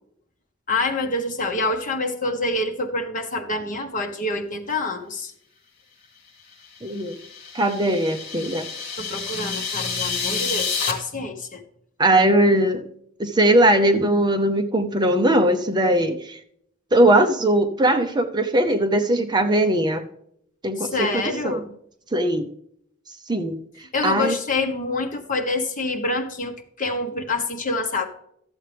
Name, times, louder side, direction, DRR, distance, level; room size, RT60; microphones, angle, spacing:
voice 1, 0.7-5.3 9.0-11.6 20.8-21.7 23.9-28.1, left 2 dB, 40° left, 4 dB, 1.3 m, -26 dB
sound 1, 6.8-10.9, left 6 dB, 60° left, 2.4 m, -29 dB
voice 2, 6.8-7.2 7.5-8.7 12.0-12.9 13.2-16.4 16.9-20.0 20.6-21.6 22.1-22.5 23.3-23.6 24.0-24.3, right 1 dB, 20° right, 7 dB, 0.7 m, -20 dB
13.0 x 7.7 x 3.4 m, 0.71 s
head